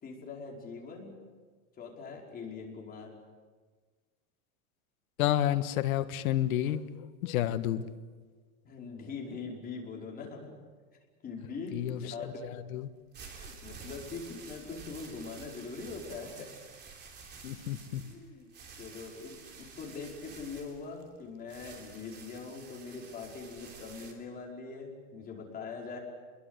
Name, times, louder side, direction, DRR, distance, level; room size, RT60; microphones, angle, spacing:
voice 1, 0.0-1.1 1.8-3.1 8.7-10.5 11.2-12.4 13.4-16.5 18.0-18.5 18.8-26.0, left 4 dB, 20° left, -1 dB, 5.2 m, -42 dB
voice 2, 5.2-6.8 7.2-7.9 11.7-12.9 17.4-18.0, left 12 dB, 70° left, 11 dB, 1.6 m, -30 dB
sound 1, 12.9-24.1, right 5 dB, 25° right, 3.4 m, -50 dB
28.0 x 22.0 x 8.1 m, 1.4 s
supercardioid pair, 155°, 44 cm